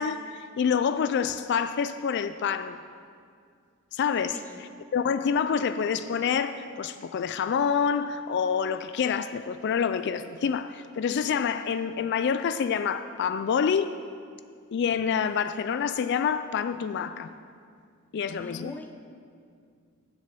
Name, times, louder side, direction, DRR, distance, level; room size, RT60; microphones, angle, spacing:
voice 1, 0.0-2.8 3.9-14.0 14.7-17.3 18.1-18.8, left 7 dB, 55° left, 12 dB, 0.3 m, -27 dB
voice 2, 4.3-4.7 18.4-19.1, left 1 dB, 10° left, 6 dB, 0.6 m, -43 dB
10.5 x 7.8 x 6.9 m, 2.3 s
head